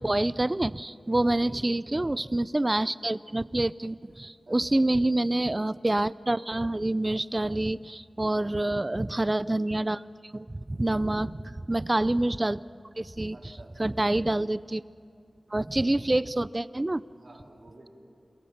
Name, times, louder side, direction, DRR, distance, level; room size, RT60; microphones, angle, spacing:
voice 1, 0.0-10.0 10.3-11.3 11.7-12.6 13.0-13.4 13.8-14.8 15.5-17.0, right 1 dB, 25° right, 19 dB, 0.5 m, -27 dB
voice 2, 1.2-1.6 4.5-5.2 11.0-11.6 13.3-14.1 17.1-17.9, right 2 dB, 65° right, 0 dB, 3.6 m, -52 dB
27.5 x 17.0 x 7.3 m, 2.5 s
wide cardioid pair, 70°, 0 cm